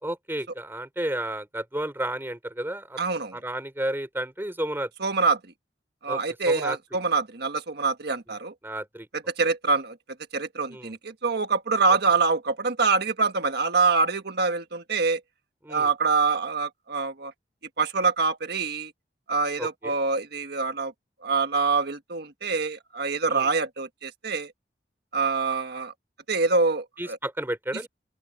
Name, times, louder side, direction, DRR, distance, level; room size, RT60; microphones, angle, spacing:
voice 1, 0.0-3.0 3.3-4.9 6.1-6.8 8.6-9.1 10.7-11.0 15.6-15.9 19.6-20.0 23.3-23.5 27.0-27.9, right 1 dB, 15° right, 3.5 m, -32 dB
voice 2, 3.0-3.4 5.0-5.4 6.0-8.5 9.4-10.0 10.3-15.2 15.7-17.3 17.8-18.9 19.3-20.9 21.2-24.5 25.1-25.9 26.3-27.2, right 4 dB, 65° right, 1.6 m, -25 dB
open air
head